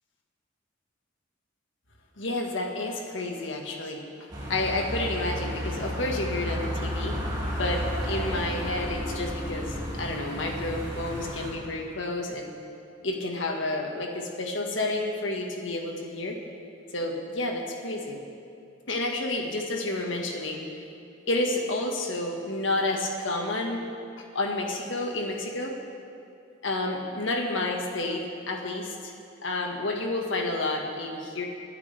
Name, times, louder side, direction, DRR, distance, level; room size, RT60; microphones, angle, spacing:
voice 1, 2.2-4.0 4.5-7.2 7.6-12.5 13.0-16.4 16.9-18.2 18.9-20.6 21.3-23.8 24.2-25.7 26.6-29.1 29.4-31.5, left 2 dB, 70° left, 1 dB, 1.7 m, -30 dB
sound 1, 4.3-11.5, equal, 20° right, 2.8 m, -32 dB
26.5 x 9.7 x 3.5 m, 2.6 s
head